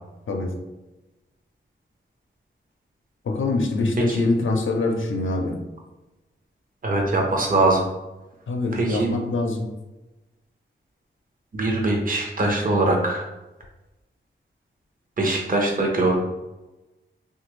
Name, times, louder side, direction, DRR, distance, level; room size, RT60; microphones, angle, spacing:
voice 1, 3.2-5.5 8.5-9.6, left 2 dB, 75° left, 3 dB, 0.5 m, -24 dB
voice 2, 6.8-7.9 8.7-9.1 11.5-13.2 15.2-16.2, right 2 dB, 45° right, -1 dB, 0.7 m, -22 dB
3.3 x 2.3 x 3.1 m, 1.1 s
wide cardioid pair, 115°, 20 cm